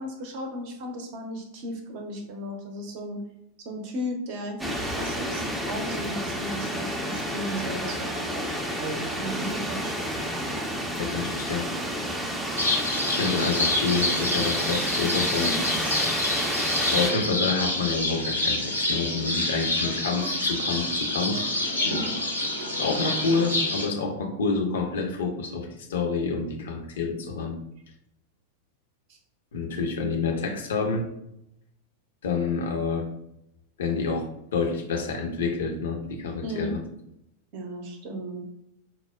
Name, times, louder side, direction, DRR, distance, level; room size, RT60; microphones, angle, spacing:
voice 1, 0.0-3.2 3.6-8.5 8.8-9.9 15.4-15.6 29.1-29.2 36.4-36.8 37.5-38.4, equal, 45° right, 3 dB, 0.6 m, -35 dB
sound 1, 4.6-17.1, equal, 5° right, 0.4 m, -30 dB
voice 2, 11.0-11.7 13.1-15.5 16.9-21.4 22.8-27.6 29.5-31.1 32.2-33.1 33.8-36.8, left 4 dB, 60° left, 3 dB, 0.5 m, -28 dB
sound 2, 12.6-23.9, left 2 dB, 90° right, 0.6 m, -27 dB
4.3 x 2.0 x 2.2 m, 0.80 s
figure-of-eight pair, 90°, 0 cm